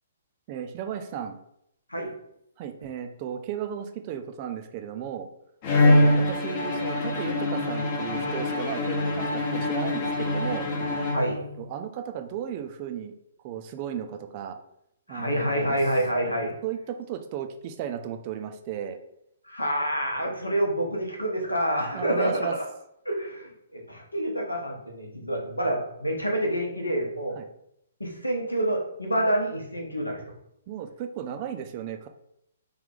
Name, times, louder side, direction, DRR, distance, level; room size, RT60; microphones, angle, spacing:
voice 1, 0.5-1.4 2.6-5.3 5.8-10.7 11.6-13.1 13.4-14.6 15.1-15.8 16.6-19.0 21.9-22.6 27.4-27.5 30.7-32.1, right 9 dB, 35° right, 6 dB, 0.4 m, -35 dB
Bowed string instrument, 5.6-11.7, left 1 dB, 35° left, 0.7 m, -24 dB
voice 2, 5.8-6.1 11.1-11.5 15.1-16.5 19.5-22.5 23.0-27.4 28.0-30.3, right 1 dB, 85° left, 1 dB, 0.9 m, -27 dB
3.4 x 2.4 x 3.7 m, 0.77 s
figure-of-eight pair, 120°, 0 cm